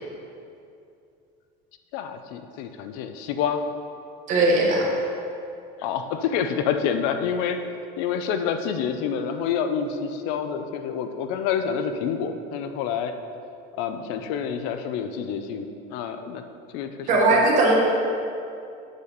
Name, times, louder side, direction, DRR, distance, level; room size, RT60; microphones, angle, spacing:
voice 1, 1.9-3.6 5.8-7.6 8.0-13.1 13.8-16.4 16.7-17.4, left 7 dB, 70° left, 8 dB, 0.6 m, -28 dB
voice 2, 4.3-4.8 17.1-17.7, right 2 dB, 40° right, -2 dB, 1.5 m, -18 dB
8.0 x 4.1 x 6.8 m, 2.5 s
cardioid pair, 180°, 21 cm